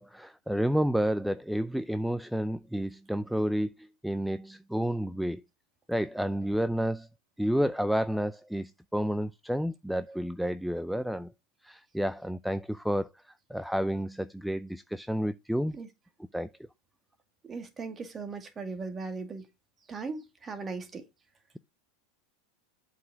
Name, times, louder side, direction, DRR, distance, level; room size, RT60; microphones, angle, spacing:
voice 1, 0.0-5.4 5.9-7.1 7.4-11.3 11.6-15.7 16.3-16.5, equal, ahead, 0.5 m, -30 dB
voice 2, 17.4-19.5 19.9-21.0, right 4 dB, 25° right, 2.1 m, -38 dB
8.0 x 5.1 x 4.8 m
hypercardioid pair, 100°, 0 cm